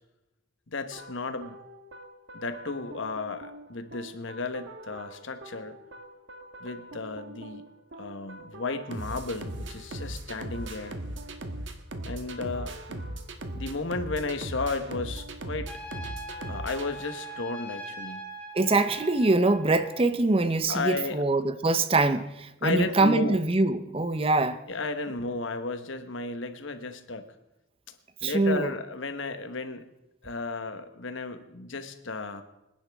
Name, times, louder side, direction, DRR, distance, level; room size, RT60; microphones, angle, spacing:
voice 1, 0.7-1.6 2.3-5.7 6.6-7.7 8.0-11.0 12.0-13.0 13.5-15.7 16.5-18.2 20.7-21.2 22.6-23.4 24.7-27.3 28.2-29.8 30.2-32.4, left 3 dB, 70° left, 9 dB, 1.1 m, -33 dB
sound 1, 0.9-17.6, right 1 dB, 65° right, 1.3 m, -40 dB
Trumpet, 15.7-20.0, right 1 dB, 5° left, 1.8 m, -41 dB
voice 2, 18.5-24.6 28.2-28.7, right 2 dB, 30° right, 12 dB, 0.6 m, -24 dB
26.0 x 10.5 x 3.5 m, 0.93 s
head